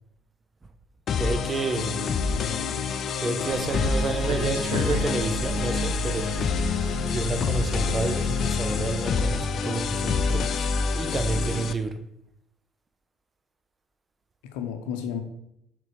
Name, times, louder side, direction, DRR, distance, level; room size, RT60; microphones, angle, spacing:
sound 1, 1.1-11.7, left 5 dB, 45° left, 0.5 m, -27 dB
voice 1, 1.2-2.1 3.2-6.4 7.1-12.0, right 3 dB, 25° right, 0.7 m, -30 dB
voice 2, 1.7-2.8 14.5-15.2, left 7 dB, 70° left, 0.8 m, -34 dB
sound 2, 3.5-8.5, right 3 dB, 80° right, 0.9 m, -35 dB
6.5 x 3.8 x 4.9 m
figure-of-eight pair, 60°, 0 cm